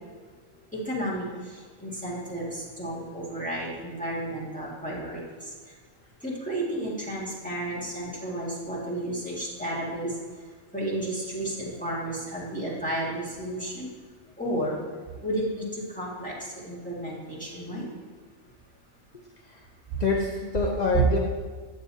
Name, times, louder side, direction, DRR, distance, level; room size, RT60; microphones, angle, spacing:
voice 1, 0.9-5.5 6.2-10.2 10.7-13.9 14.4-14.8 15.2-17.9 20.9-21.0, right 1 dB, 5° left, -6 dB, 1.8 m, -32 dB
voice 2, 19.4-19.7 20.0-21.2, left 4 dB, 50° left, -1 dB, 0.5 m, -26 dB
9.3 x 7.3 x 2.7 m, 1.5 s
omnidirectional pair, 1.5 m